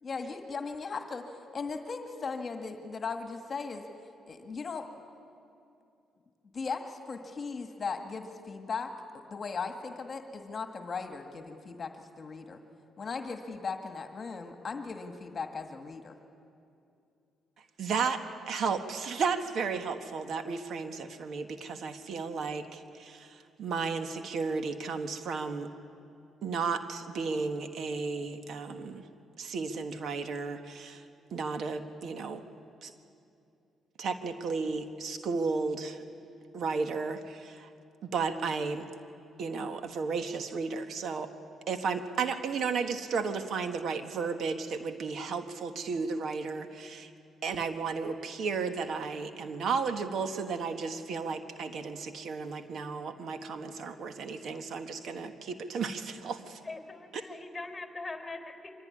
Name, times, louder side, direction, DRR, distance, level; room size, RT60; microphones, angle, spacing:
voice 1, 0.0-3.9 4.3-4.9 6.5-12.6 13.0-16.2, left 4 dB, 40° left, 5 dB, 1.8 m, -38 dB
voice 2, 17.8-25.7 26.4-29.0 29.4-31.0 31.3-32.4 32.8-32.9 34.0-36.0 36.5-37.7 38.0-38.9 39.4-41.3 41.7-47.1 47.4-56.6 57.1-57.2, right 5 dB, 65° right, 7 dB, 1.4 m, -33 dB
voice 3, 56.6-58.7, left 3 dB, 15° left, 6 dB, 3.9 m, -41 dB
24.5 x 16.5 x 9.8 m, 2.6 s
cardioid pair, 90°, 0 cm